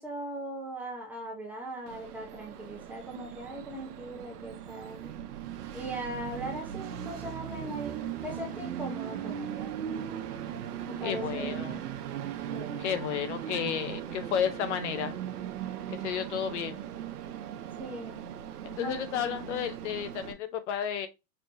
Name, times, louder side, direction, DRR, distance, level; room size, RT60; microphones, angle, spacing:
voice 1, 0.0-5.2 5.7-9.7 10.8-11.8 12.5-12.8 17.8-18.3 18.8-19.1, right 1 dB, 5° right, 0.7 m, -40 dB
Train, 1.9-20.3, right 9 dB, 75° right, 0.8 m, -38 dB
voice 2, 11.0-11.8 12.8-15.1 15.9-16.8 18.6-21.1, left 9 dB, 50° left, 0.7 m, -32 dB
5.4 x 2.7 x 2.6 m
hypercardioid pair, 145°, 46 cm